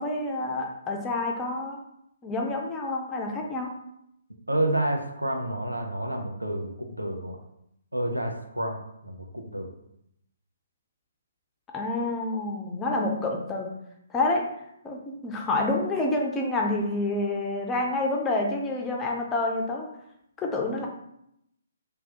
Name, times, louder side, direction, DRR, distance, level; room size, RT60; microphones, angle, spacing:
voice 1, 0.0-1.8 2.2-3.7 11.7-13.7 14.1-14.5 14.8-19.9 20.4-20.9, left 2 dB, 15° left, 0 dB, 0.4 m, -28 dB
voice 2, 4.5-7.4 7.9-9.7, right 1 dB, 85° right, 3 dB, 0.5 m, -29 dB
3.2 x 2.2 x 2.8 m, 0.77 s
figure-of-eight pair, 130°, 0 cm